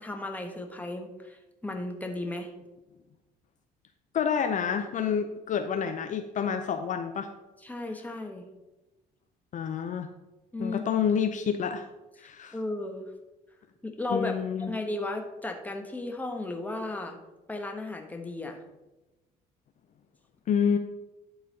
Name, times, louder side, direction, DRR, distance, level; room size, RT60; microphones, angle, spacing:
voice 1, 0.0-2.5 7.6-8.4 10.5-10.8 12.5-13.1 13.8-14.4 14.7-17.2 17.5-18.6, left 2 dB, 10° left, 4 dB, 1.2 m, -34 dB
voice 2, 4.1-7.3 9.5-10.1 10.6-11.9 12.2-12.6 14.1-14.7 20.5-20.8, left 7 dB, 50° left, 6 dB, 0.6 m, -28 dB
11.0 x 4.0 x 5.3 m, 1.0 s
cardioid pair, 110°, 17 cm